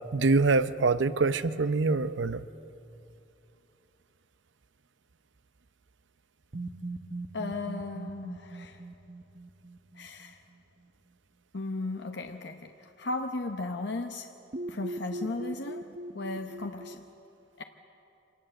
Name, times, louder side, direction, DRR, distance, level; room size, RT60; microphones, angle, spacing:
voice 1, 0.1-2.4, right 3 dB, 80° right, 13 dB, 0.7 m, -25 dB
sound 1, 6.5-10.5 14.5-17.0, right 1 dB, 45° right, 0.9 m, -40 dB
voice 2, 7.3-8.8 9.9-10.4 11.5-14.3 14.7-15.9 16.1-17.1 17.6-17.7, left 2 dB, 65° left, 5 dB, 0.9 m, -36 dB
25.5 x 19.0 x 7.8 m, 2.8 s
head